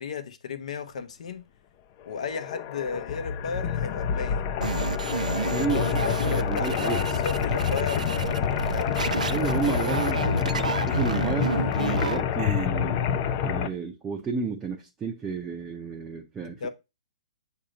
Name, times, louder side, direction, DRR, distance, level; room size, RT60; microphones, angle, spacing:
voice 1, 0.0-1.5 2.1-4.4 5.6-8.9 16.4-16.7, left 5 dB, 65° left, 0.9 m, -34 dB
sound 1, 2.1-13.7, left 8 dB, 35° left, 0.5 m, -27 dB
sound 2, 4.6-12.7, right 5 dB, 85° right, 0.4 m, -31 dB
voice 2, 5.5-6.0 6.3-7.0 9.3-13.0 13.4-16.7, right 5 dB, 15° right, 0.6 m, -31 dB
6.6 x 2.8 x 5.1 m
hypercardioid pair, 140°, 4 cm